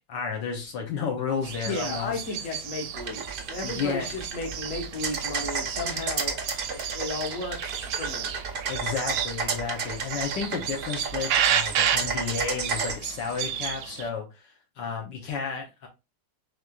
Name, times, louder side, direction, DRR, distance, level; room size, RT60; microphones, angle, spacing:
voice 1, 0.1-2.2 3.6-4.1 8.7-14.3 14.8-15.9, left 6 dB, 70° left, 1.5 m, -32 dB
sound 1, 1.4-14.1, right 9 dB, 75° right, 1.2 m, -32 dB
voice 2, 1.6-3.2 3.5-6.4 6.7-8.3, left 3 dB, 45° left, 1.4 m, -34 dB
sound 2, 3.0-12.9, right 5 dB, 55° right, 0.6 m, -32 dB
4.8 x 3.8 x 2.3 m
omnidirectional pair, 2.1 m